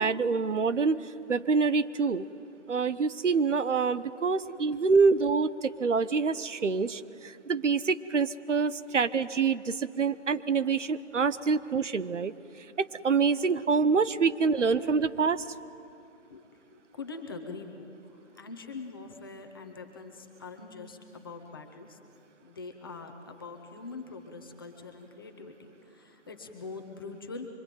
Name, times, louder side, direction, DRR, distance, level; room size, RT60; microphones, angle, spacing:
voice 1, 0.0-2.3 2.7-12.3 12.8-15.4, right 5 dB, 75° right, 14 dB, 1.1 m, -26 dB
voice 2, 14.5-15.2 16.3-16.4 17.0-17.9 18.4-22.0 22.4-27.5, left 4 dB, 20° left, 4 dB, 1.2 m, -43 dB
24.5 x 23.5 x 9.2 m, 2.6 s
hypercardioid pair, 175°, 36 cm